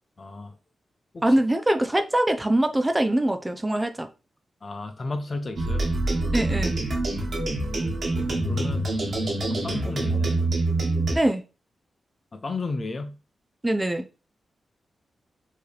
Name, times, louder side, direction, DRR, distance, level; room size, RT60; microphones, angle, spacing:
voice 1, 0.2-0.5 1.1-1.3 4.6-5.9 7.5-8.0 8.5-8.9 9.5-10.4 12.3-13.2, left 3 dB, 45° left, 0.7 m, -33 dB
voice 2, 1.2-4.1 6.3-6.8 11.1-11.4 13.6-14.0, right 1 dB, 15° right, 0.5 m, -23 dB
sound 1, 5.6-11.2, right 2 dB, 60° right, 1.2 m, -25 dB
4.5 x 3.1 x 3.3 m
cardioid pair, 75°, 0 cm